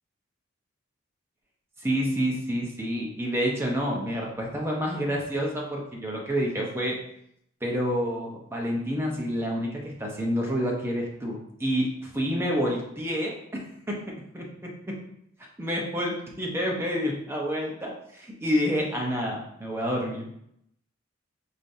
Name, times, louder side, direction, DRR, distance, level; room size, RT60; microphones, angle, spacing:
voice 1, 1.8-7.0 7.6-14.0 14.3-15.0 15.6-20.2, equal, 10° right, -2 dB, 0.8 m, -28 dB
5.0 x 2.9 x 2.6 m, 0.73 s
head